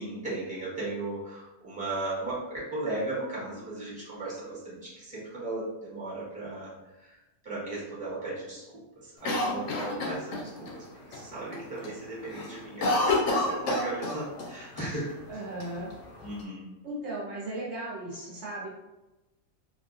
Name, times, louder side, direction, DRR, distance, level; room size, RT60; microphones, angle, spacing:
voice 1, 0.0-7.2 7.4-15.2 16.2-16.7, right 2 dB, 5° right, -8 dB, 1.0 m, -36 dB
Cough, 9.2-10.7 11.1-11.2 11.5-11.9 12.2-14.5 14.8-14.9 15.6-16.4, left 2 dB, 80° left, 1.0 m, -28 dB
voice 2, 15.3-15.9 16.8-18.7, right 1 dB, 65° right, -5 dB, 1.0 m, -36 dB
2.8 x 2.5 x 2.5 m, 1.0 s
omnidirectional pair, 1.3 m